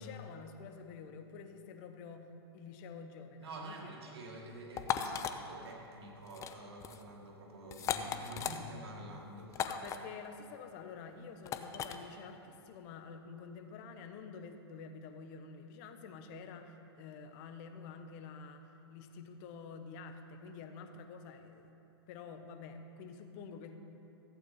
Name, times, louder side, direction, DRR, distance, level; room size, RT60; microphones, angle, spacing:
voice 1, 0.0-4.0 4.9-5.3 9.6-21.7 22.1-23.8, left 5 dB, 40° left, 7 dB, 1.0 m, -49 dB
voice 2, 3.4-5.1 5.4-9.7, right 1 dB, 70° right, 0 dB, 1.8 m, -48 dB
sound 1, 4.8-5.3 6.3-6.5 6.8-7.0 7.7-8.6 9.5-10.0 11.4-12.0, left 9 dB, 20° left, 0.5 m, -36 dB
14.5 x 8.5 x 4.2 m, 2.9 s
hypercardioid pair, 125°, 14 cm